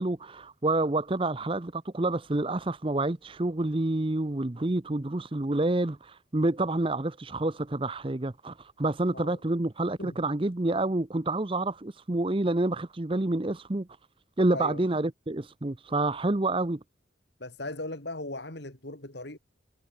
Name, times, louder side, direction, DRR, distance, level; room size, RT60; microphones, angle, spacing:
voice 1, 0.0-13.9 14.4-16.8, right 2 dB, 25° right, 0.7 m, -28 dB
voice 2, 14.5-14.8 17.4-19.4, left 2 dB, 60° left, 3.0 m, -38 dB
head